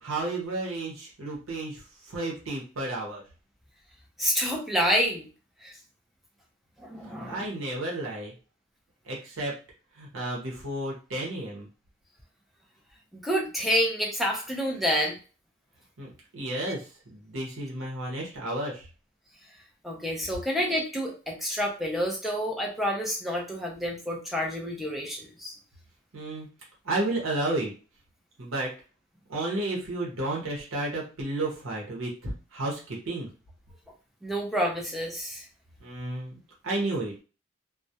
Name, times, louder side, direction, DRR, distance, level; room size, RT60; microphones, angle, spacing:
voice 1, 0.0-3.2 7.3-8.3 9.1-9.5 10.0-11.7 16.0-18.9 26.1-26.5 26.8-27.7 28.4-28.7 29.3-32.8 33.1-33.3 35.8-36.3 36.6-37.1, right 2 dB, 85° right, -3 dB, 0.8 m, -32 dB
voice 2, 4.2-5.3 5.6-5.8 6.8-7.5 13.1-15.2 19.8-25.6 34.2-35.4, equal, ahead, -1 dB, 0.4 m, -28 dB
2.3 x 2.0 x 2.7 m, 0.35 s
head